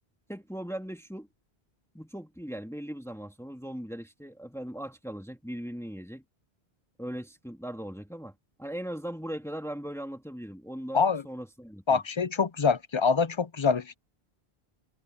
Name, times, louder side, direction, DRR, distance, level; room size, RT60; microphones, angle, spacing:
voice 1, 0.3-1.3 1.9-6.2 7.0-8.3 8.6-12.0, equal, 5° left, 2.3 m, -39 dB
voice 2, 11.9-14.0, left 5 dB, 35° left, 0.5 m, -25 dB
omnidirectional pair, 1.0 m